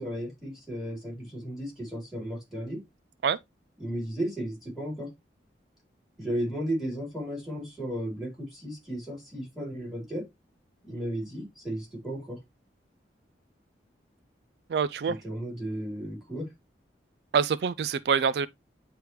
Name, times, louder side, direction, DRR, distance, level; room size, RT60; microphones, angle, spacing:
voice 1, 0.0-2.8 3.8-5.1 6.2-10.2 10.8-12.4 15.0-16.4, equal, ahead, 3.6 m, -34 dB
voice 2, 14.7-15.2 17.3-18.5, right 6 dB, 65° right, 0.3 m, -25 dB
9.5 x 3.3 x 3.0 m
head